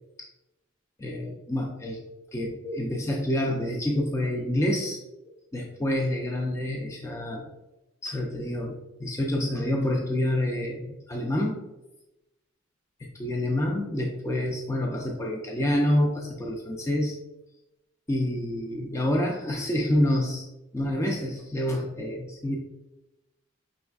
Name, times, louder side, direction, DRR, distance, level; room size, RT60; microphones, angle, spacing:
voice 1, 1.0-2.0 2.3-5.0 5.5-7.5 8.0-11.6 13.2-17.2 18.1-20.5 20.7-22.6, left 1 dB, 15° left, 0 dB, 0.4 m, -27 dB
5.2 x 3.2 x 2.3 m, 0.96 s
head